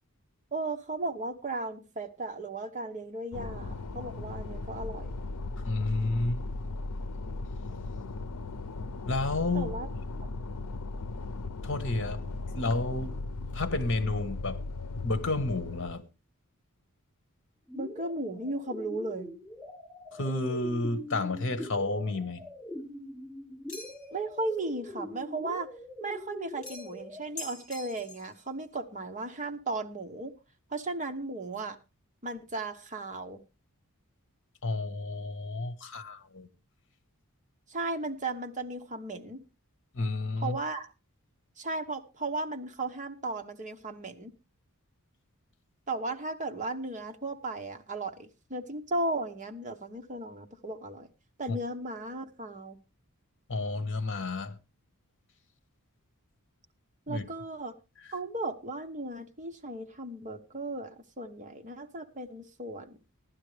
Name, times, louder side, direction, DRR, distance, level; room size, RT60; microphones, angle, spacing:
voice 1, 0.5-5.1 9.5-9.9 17.7-19.3 24.1-25.7 26.0-30.3 30.7-31.8 32.2-33.4 37.7-39.4 40.4-40.9 41.6-44.3 45.9-51.1 51.4-52.8 57.1-57.7 58.1-63.0, right 2 dB, 35° right, 1.0 m, -36 dB
sound 1, 3.3-15.9, left 3 dB, 90° left, 0.6 m, -37 dB
voice 2, 5.6-6.4 9.1-9.7 11.6-12.2 12.5-13.2 13.5-14.6 15.0-16.0 20.1-22.4 34.6-36.5 39.9-40.6 51.5-51.6 53.5-54.6 57.1-57.2 58.0-58.1, left 2 dB, 55° left, 1.3 m, -31 dB
sound 2, 17.7-27.2, left 1 dB, 5° right, 4.8 m, -43 dB
sound 3, 23.7-24.2 26.6-27.0 27.4-28.3, left 3 dB, 35° left, 6.0 m, -44 dB
16.0 x 11.5 x 3.3 m
head